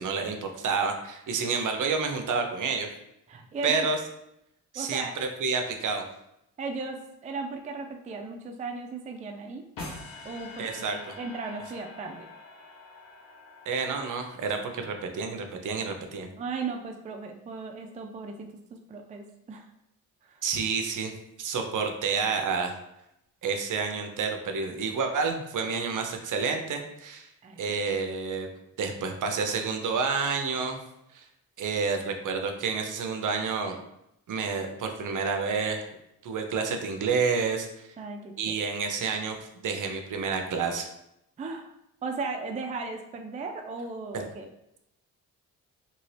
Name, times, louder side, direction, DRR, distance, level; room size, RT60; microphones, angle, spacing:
voice 1, 0.0-2.9 3.6-4.0 4.7-6.0 10.6-11.2 13.7-16.3 20.4-21.1 21.4-22.7 23.4-27.3 27.6-28.5 28.8-30.8 31.1-31.2 31.6-33.8 34.3-35.9 36.2-37.9 38.4-39.4 39.6-40.9 44.1-44.2, right 5 dB, 55° right, 5 dB, 0.7 m, -29 dB
voice 2, 3.3-3.9 4.8-5.1 6.6-9.6 10.2-12.3 16.4-19.7 20.3-20.4 27.4-27.8 38.0-38.6 41.4-41.7 42.0-44.5, right 4 dB, 20° right, 3 dB, 0.4 m, -36 dB
sound 1, 9.8-15.0, left 3 dB, 60° left, 1.0 m, -45 dB
2.9 x 2.7 x 3.2 m, 0.82 s
supercardioid pair, 65°, 38 cm